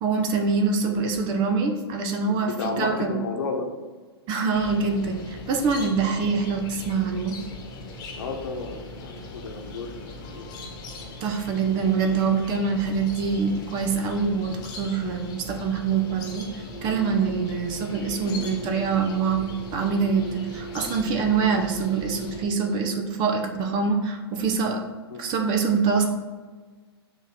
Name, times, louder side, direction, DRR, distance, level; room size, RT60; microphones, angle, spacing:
voice 1, 0.0-3.1 4.3-7.3 11.2-16.5 16.8-24.8 25.2-26.0, right 5 dB, 35° right, 4 dB, 0.9 m, -25 dB
voice 2, 2.2-3.7 6.2-6.3 8.2-10.5 18.2-18.6 25.1-25.2, left 4 dB, 60° left, 2 dB, 1.2 m, -33 dB
sound 1, 4.5-22.4, left 2 dB, 30° left, 1.3 m, -40 dB
sound 2, 16.6-22.9, right 3 dB, 65° right, 1.7 m, -40 dB
6.5 x 3.2 x 5.9 m, 1.4 s
figure-of-eight pair, 110°, 14 cm